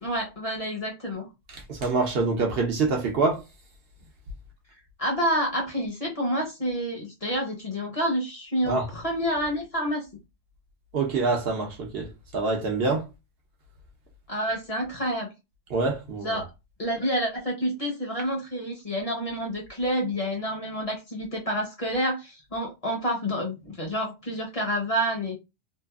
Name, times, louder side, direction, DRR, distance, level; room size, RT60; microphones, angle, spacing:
voice 1, 0.0-1.3 5.0-10.1 14.3-15.3 16.2-16.5 16.8-25.4, equal, 35° left, 0.7 m, -28 dB
voice 2, 1.5-3.4 8.6-8.9 10.9-13.1 15.7-16.4, right 3 dB, 65° right, 0.9 m, -26 dB
2.9 x 2.4 x 2.3 m
omnidirectional pair, 1.1 m